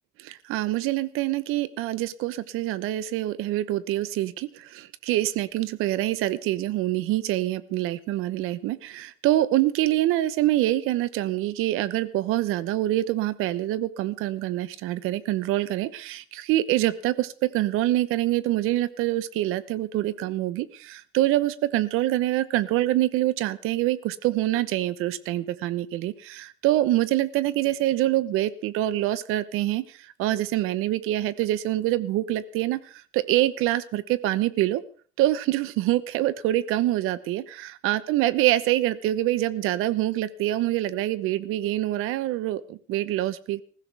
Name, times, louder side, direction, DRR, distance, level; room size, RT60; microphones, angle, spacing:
voice 1, 0.2-34.8 35.2-43.6, right 15 dB, 90° right, 16 dB, 1.0 m, -25 dB
20.0 x 15.5 x 3.5 m, 0.42 s
cardioid pair, 165°, 21 cm